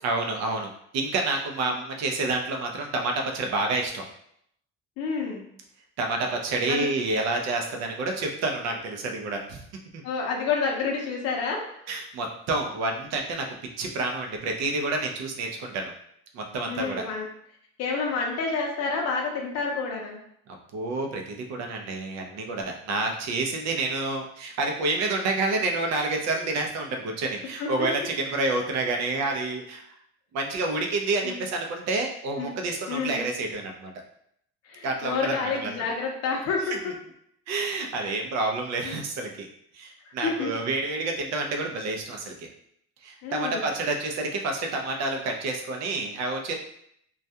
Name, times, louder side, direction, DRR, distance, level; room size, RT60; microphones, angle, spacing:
voice 1, 0.0-4.0 6.0-9.6 9.9-10.0 11.9-13.5 13.8-15.9 16.3-17.1 20.5-29.8 30.3-33.9 34.8-35.7 37.5-39.5 39.7-42.5 43.0-46.5, right 2 dB, 65° right, 2 dB, 0.5 m, -29 dB
voice 2, 5.0-5.5 6.7-6.9 10.0-11.7 16.7-17.3 17.8-20.2 27.6-27.9 31.2-31.4 32.4-32.5 32.9-33.3 34.7-36.8 38.0-38.2 38.8-39.0 40.2-40.5 43.2-43.7, left 4 dB, 60° left, 0 dB, 0.5 m, -29 dB
2.3 x 2.2 x 2.7 m, 0.71 s
cardioid pair, 160°, 29 cm